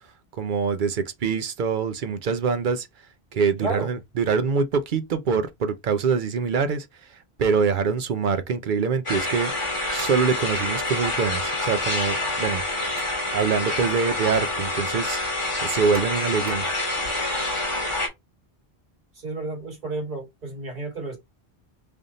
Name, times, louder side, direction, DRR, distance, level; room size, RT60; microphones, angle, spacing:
voice 1, 0.3-2.9 3.3-12.6 12.9-13.0 13.3-15.2 15.6-16.7, right 5 dB, 55° right, 0.7 m, -24 dB
voice 2, 3.6-3.9 19.2-21.2, right 2 dB, 40° right, 1.9 m, -31 dB
sound 1, 9.1-18.1, left 2 dB, 30° left, 1.1 m, -27 dB
sound 2, 10.0-10.3 12.6-13.2 13.7-13.8 15.9-16.7, right 3 dB, 75° right, 1.8 m, -43 dB
3.5 x 2.5 x 3.9 m
omnidirectional pair, 1.0 m